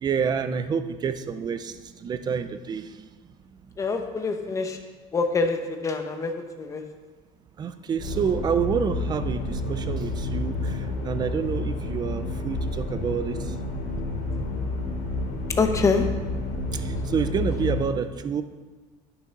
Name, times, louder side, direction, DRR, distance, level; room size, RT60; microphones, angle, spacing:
voice 1, 0.0-3.0 7.6-13.5 16.7-18.4, right 6 dB, 25° right, 11 dB, 0.5 m, -28 dB
voice 2, 3.8-4.8 5.1-5.6 5.8-6.8 15.6-16.1, left 4 dB, 20° left, 5 dB, 0.9 m, -25 dB
sound 1, 8.0-17.9, left 2 dB, 70° left, 2.8 m, -30 dB
11.0 x 7.1 x 5.3 m, 1.3 s
cardioid pair, 160°, 16 cm